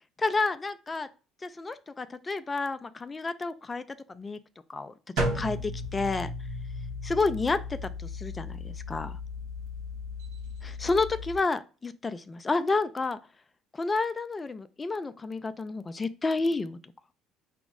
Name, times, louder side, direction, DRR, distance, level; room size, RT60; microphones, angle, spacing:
voice 1, 0.2-1.1 1.4-3.8 4.1-4.4 4.7-6.3 7.0-9.2 10.8-13.2 13.7-16.8, left 3 dB, 25° left, 0.3 m, -30 dB
sound 1, 5.2-11.4, left 1 dB, 85° right, 1.5 m, -35 dB
4.9 x 2.0 x 3.5 m
hypercardioid pair, 70°, 0 cm